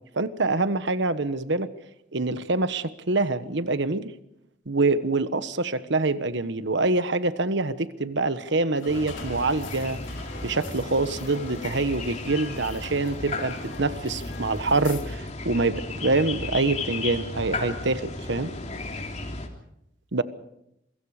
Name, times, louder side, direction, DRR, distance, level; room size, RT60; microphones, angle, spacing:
voice 1, 0.2-1.7 2.1-4.1 4.7-10.0 10.4-18.5 20.1-20.2, right 3 dB, 65° right, 12 dB, 1.3 m, -25 dB
sound 1, 8.7-15.0, left 4 dB, 80° left, 3.7 m, -43 dB
sound 2, 8.9-19.5, left 2 dB, 35° left, 3.4 m, -35 dB
27.5 x 23.5 x 5.0 m, 0.80 s
head